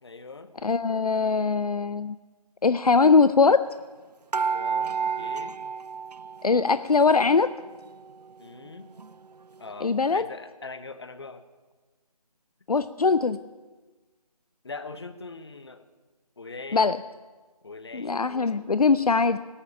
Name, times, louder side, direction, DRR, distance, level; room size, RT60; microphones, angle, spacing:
voice 1, 0.0-0.5 4.5-5.6 8.4-8.9 9.6-11.4 14.6-15.8 16.4-16.9 17.6-18.2, left 3 dB, 40° left, 11 dB, 0.9 m, -41 dB
voice 2, 0.6-2.2 2.6-3.7 6.4-7.5 9.8-10.3 12.7-13.4 16.7-17.0 17.9-19.4, left 4 dB, 70° left, 14 dB, 0.5 m, -21 dB
sound 1, 4.3-6.9 7.2-8.1 8.7-8.8 9.0-9.1, right 6 dB, 85° right, 0.4 m, -31 dB
18.5 x 7.2 x 8.7 m, 1.3 s
figure-of-eight pair, 160°, 20 cm